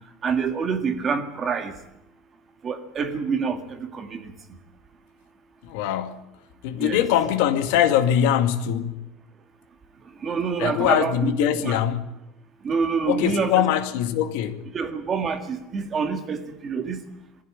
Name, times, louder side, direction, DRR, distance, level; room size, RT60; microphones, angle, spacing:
voice 1, 0.2-1.7 2.6-4.3 6.8-7.0 10.2-11.3 11.6-11.8 12.6-13.7 14.7-17.0, right 5 dB, 20° right, 1.9 m, -26 dB
voice 2, 5.6-6.3 6.6-9.0 10.6-12.0 13.1-14.6, left 10 dB, 65° left, 2.2 m, -22 dB
22.5 x 15.5 x 8.7 m
cardioid pair, 175°, 0 cm